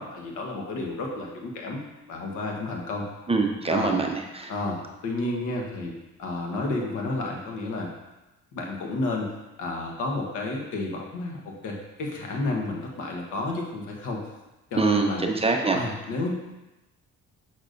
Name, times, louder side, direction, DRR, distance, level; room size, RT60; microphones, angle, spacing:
voice 1, 0.0-1.8 2.1-3.1 3.7-4.0 4.5-5.9 6.2-7.9 8.5-9.3 9.6-14.2 14.7-15.3 15.7-16.3, left 2 dB, 85° left, 0 dB, 1.2 m, -31 dB
voice 2, 3.3-4.5 14.8-15.8, right 3 dB, 20° right, 2 dB, 0.7 m, -24 dB
6.5 x 6.0 x 2.6 m, 1.0 s
cardioid pair, 90°, 30 cm